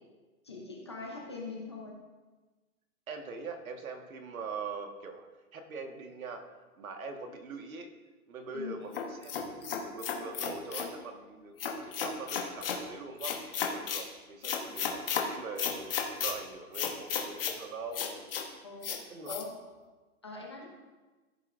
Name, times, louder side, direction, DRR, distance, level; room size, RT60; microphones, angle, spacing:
voice 1, 0.4-2.0 8.5-8.7 18.6-19.5 20.2-20.7, left 4 dB, 20° left, -2 dB, 0.6 m, -42 dB
voice 2, 3.1-5.3 5.5-6.4 6.8-7.9 8.3-9.3 9.6-15.9 16.2-18.3 19.1-19.3, right 4 dB, 65° right, 4 dB, 1.6 m, -42 dB
sound 1, 8.9-10.9 11.6-12.8 13.2-14.0 14.4-15.2 15.6-16.3 16.7-17.6 17.9-18.4 18.8-19.0 19.3-19.4, left 7 dB, 40° left, 1.2 m, -33 dB
14.5 x 8.0 x 2.5 m, 1.3 s
hypercardioid pair, 180°, 44 cm